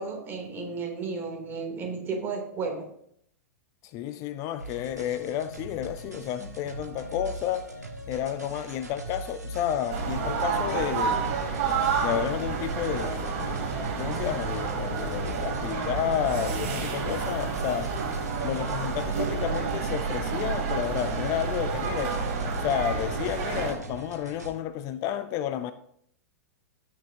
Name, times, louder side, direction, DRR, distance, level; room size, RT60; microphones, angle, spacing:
voice 1, 0.0-2.9, right 4 dB, 25° right, 3.1 m, -33 dB
voice 2, 3.8-7.7 8.1-11.4 12.0-13.7 14.0-18.1 18.4-25.7, left 10 dB, 35° left, 0.6 m, -31 dB
sound 1, 4.6-24.5, right 1 dB, 90° right, 1.5 m, -40 dB
sound 2, 9.9-23.7, right 5 dB, 50° right, 3.4 m, -29 dB
19.5 x 6.5 x 2.8 m
figure-of-eight pair, 95°, 9 cm